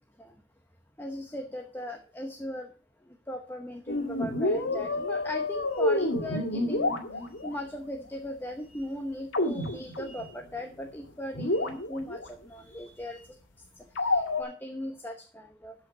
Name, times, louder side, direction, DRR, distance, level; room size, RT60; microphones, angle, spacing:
voice 1, 1.0-2.7 3.1-6.9 7.3-13.2 14.0-15.7, left 1 dB, 10° left, 4 dB, 1.0 m, -38 dB
sound 1, 3.9-7.5 9.3-10.3 10.6-10.7 11.0-11.1 11.3-12.3 13.9-14.4, left 2 dB, 85° left, 2.0 m, -29 dB
13.0 x 5.5 x 5.5 m, 0.39 s
head